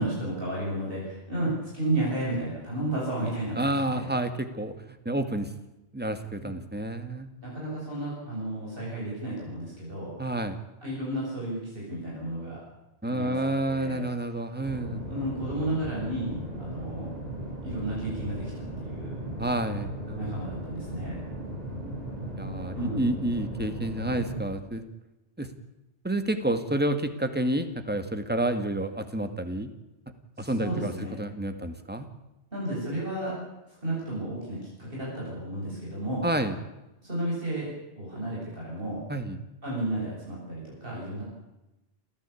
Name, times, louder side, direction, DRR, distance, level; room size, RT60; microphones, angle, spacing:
voice 1, 0.0-4.1 6.4-6.5 7.4-10.1 10.8-12.6 13.0-13.4 13.7-14.0 15.1-17.1 17.6-19.1 20.2-21.1 22.5-23.1 30.4-31.2 32.5-33.4 33.8-36.3 37.0-37.7 38.0-39.0 39.6-41.2, right 1 dB, 55° right, -5 dB, 8.4 m, -32 dB
voice 2, 3.6-5.5 5.9-7.3 10.2-10.6 13.0-15.0 19.4-20.4 22.4-24.8 25.4-25.5 26.0-29.7 30.4-30.9 31.2-32.1 36.2-36.6 39.1-39.4, right 1 dB, 10° right, 8 dB, 1.9 m, -29 dB
sound 1, 14.6-24.4, right 1 dB, 35° right, 7.4 m, -37 dB
29.0 x 14.0 x 8.6 m, 0.98 s
omnidirectional pair, 1.1 m